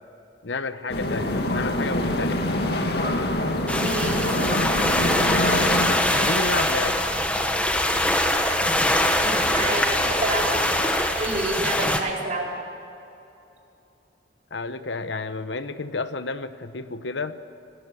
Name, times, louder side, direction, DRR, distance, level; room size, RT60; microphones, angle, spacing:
voice 1, 0.4-2.4 6.1-7.0 14.5-17.4, left 3 dB, 80° left, 11 dB, 1.0 m, -30 dB
sound 1, 0.9-6.0, left 1 dB, 55° left, 2.2 m, -25 dB
voice 2, 3.6-4.6 9.1-10.8 11.1-12.5, right 2 dB, 40° right, -2 dB, 4.5 m, -29 dB
sound 2, 3.7-12.0, left 1 dB, 5° left, 1.5 m, -23 dB
26.5 x 20.0 x 6.9 m, 2.8 s
head